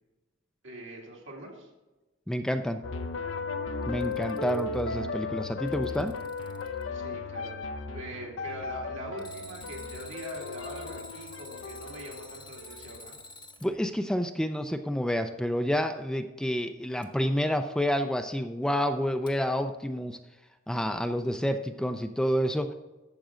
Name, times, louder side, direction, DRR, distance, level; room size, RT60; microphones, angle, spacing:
voice 1, 0.6-1.7 6.9-7.7 7.9-13.2, right 1 dB, 70° right, -2 dB, 2.5 m, -42 dB
voice 2, 2.3-2.8 3.9-6.1 13.6-20.2 20.7-22.7, equal, 5° left, 7 dB, 0.4 m, -29 dB
sound 1, 2.8-13.0, left 4 dB, 80° left, 0.7 m, -36 dB
Alarm, 3.8-4.8 5.4-6.8 9.2-13.7 17.0-17.1 19.3-19.4, left 2 dB, 25° left, 0.9 m, -48 dB
12.0 x 7.5 x 3.7 m, 1.1 s
head